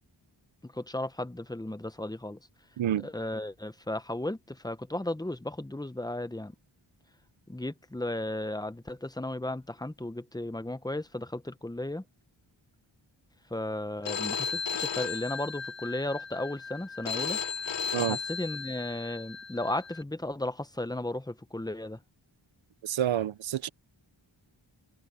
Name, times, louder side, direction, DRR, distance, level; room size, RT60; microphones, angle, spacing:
voice 1, 0.6-2.4 3.0-6.6 7.5-12.0 13.5-17.4 18.0-22.0, left 1 dB, 10° left, 0.8 m, -35 dB
voice 2, 2.8-3.1 17.9-18.2 22.8-23.7, right 11 dB, 75° right, 0.6 m, -28 dB
Telephone, 14.1-20.0, left 6 dB, 65° left, 0.8 m, -35 dB
wide cardioid pair, 85°, 47 cm